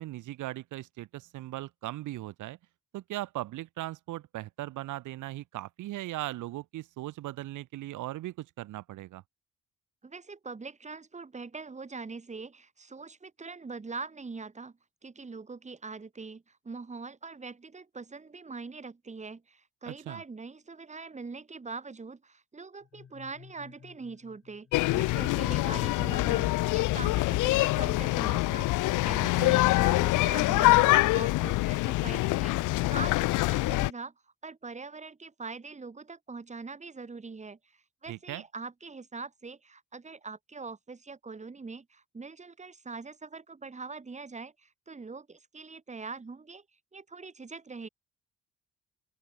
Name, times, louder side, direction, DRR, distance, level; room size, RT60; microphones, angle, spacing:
voice 1, 0.0-2.6 2.9-9.2 19.8-20.2 29.2-29.6 38.1-38.4, right 16 dB, 80° right, 1.0 m, -38 dB
voice 2, 10.0-14.7 15.0-28.7 29.0-34.1 34.4-46.6 46.9-47.9, right 4 dB, 25° right, 1.9 m, -43 dB
sound 1, 22.8-25.6, left 7 dB, 45° left, 2.7 m, -55 dB
sound 2, 24.7-33.9, left 19 dB, 85° left, 0.5 m, -25 dB
open air
cardioid pair, 90°, 30 cm